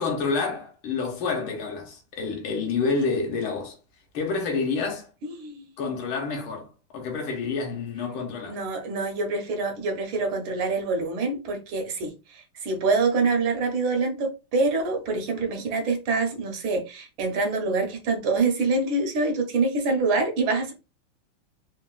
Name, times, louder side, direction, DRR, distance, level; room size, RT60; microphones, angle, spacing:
voice 1, 0.0-3.8 4.1-5.1 5.8-6.7 6.9-8.6, left 4 dB, 80° left, 1.6 m, -28 dB
voice 2, 5.4-5.7 8.5-20.7, right 3 dB, 75° right, 1.4 m, -25 dB
3.7 x 2.0 x 2.3 m
omnidirectional pair, 2.3 m